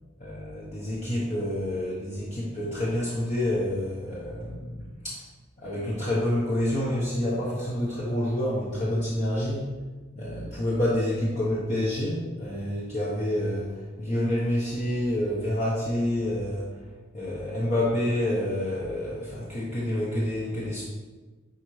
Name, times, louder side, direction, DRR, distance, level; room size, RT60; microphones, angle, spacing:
voice 1, 0.2-5.2 5.6-9.7 10.2-16.7 17.1-20.8, left 1 dB, 35° left, -7 dB, 1.2 m, -28 dB
9.9 x 4.4 x 3.3 m, 1.3 s
head